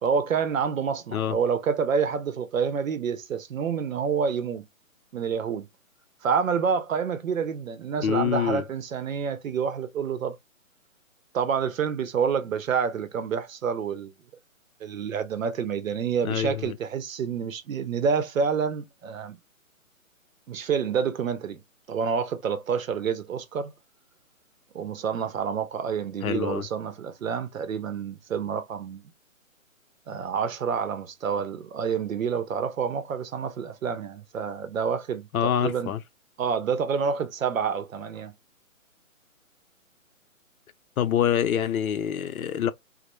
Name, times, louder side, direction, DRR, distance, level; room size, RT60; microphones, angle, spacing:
voice 1, 0.0-4.7 5.1-5.7 6.2-10.4 11.3-14.1 14.8-19.4 20.5-21.6 21.9-23.7 24.7-29.0 30.1-35.9 36.4-38.3, right 6 dB, 70° right, 0.7 m, -28 dB
voice 2, 8.0-8.6 16.2-16.8 26.2-26.7 35.3-36.0 41.0-42.7, left 9 dB, 90° left, 0.5 m, -26 dB
2.1 x 2.1 x 2.9 m
hypercardioid pair, 160°, 41 cm